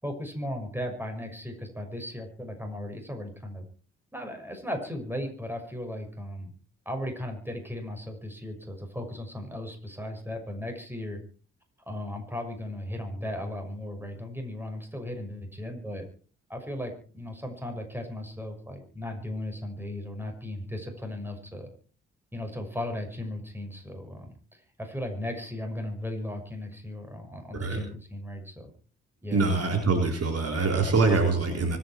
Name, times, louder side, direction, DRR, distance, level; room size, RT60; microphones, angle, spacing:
voice 1, 0.0-3.6 4.1-6.5 6.8-11.2 11.9-16.1 16.5-21.7 22.3-28.7 29.2-29.4, left 1 dB, 5° right, 4 dB, 6.2 m, -36 dB
voice 2, 29.3-31.8, right 3 dB, 45° right, 3 dB, 4.0 m, -24 dB
24.5 x 9.8 x 4.5 m, 0.41 s
hypercardioid pair, 45°, 33 cm